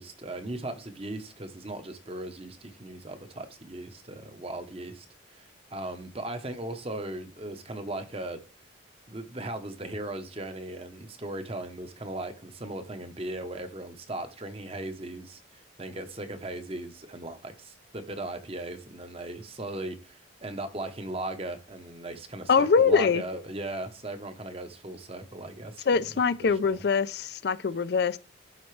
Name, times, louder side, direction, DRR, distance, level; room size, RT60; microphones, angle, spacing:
voice 1, 0.0-8.4 9.1-26.1 26.4-26.8, right 1 dB, 30° right, 0.8 m, -38 dB
voice 2, 22.5-23.2 25.9-28.2, left 5 dB, 55° left, 0.4 m, -23 dB
11.5 x 4.1 x 3.2 m
head